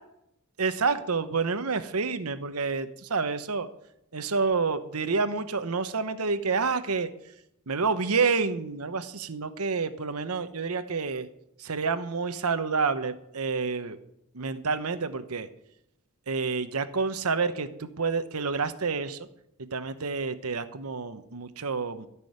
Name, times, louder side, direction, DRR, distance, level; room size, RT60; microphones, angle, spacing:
voice 1, 0.6-3.7 4.1-7.1 7.7-11.3 11.6-14.0 14.3-15.5 16.3-19.3 19.7-22.1, right 4 dB, 85° right, 10 dB, 1.0 m, -28 dB
14.0 x 6.2 x 9.4 m, 0.78 s
head